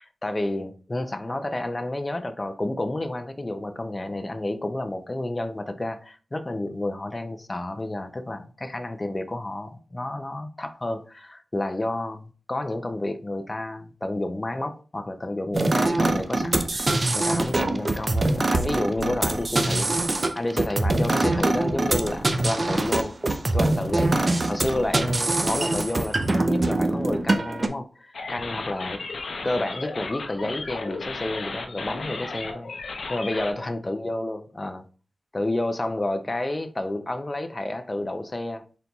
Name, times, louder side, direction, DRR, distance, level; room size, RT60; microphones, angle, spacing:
voice 1, 0.0-20.0 20.3-23.2 23.5-29.0 29.4-34.8 35.3-38.7, left 1 dB, 25° left, 0.4 m, -30 dB
sound 1, 15.5-27.7, right 2 dB, 30° right, 0.4 m, -23 dB
sound 2, 28.1-33.5, left 3 dB, 70° left, 0.6 m, -34 dB
4.2 x 4.0 x 2.3 m
wide cardioid pair, 120°, 0 cm